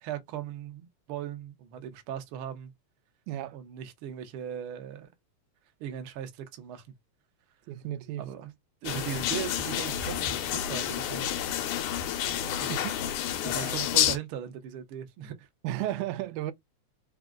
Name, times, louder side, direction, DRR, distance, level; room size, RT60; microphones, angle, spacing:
voice 1, 0.0-2.7 3.5-5.1 5.8-6.8 8.2-8.5 8.8-11.6 12.6-12.8 13.4-15.5, right 9 dB, 70° right, 1.3 m, -38 dB
voice 2, 3.3-3.6 7.7-8.3 12.7-12.9 15.6-16.5, right 13 dB, 85° right, 2.0 m, -33 dB
sound 1, 8.9-14.2, left 10 dB, 85° left, 2.2 m, -29 dB
4.9 x 2.4 x 3.7 m
omnidirectional pair, 3.4 m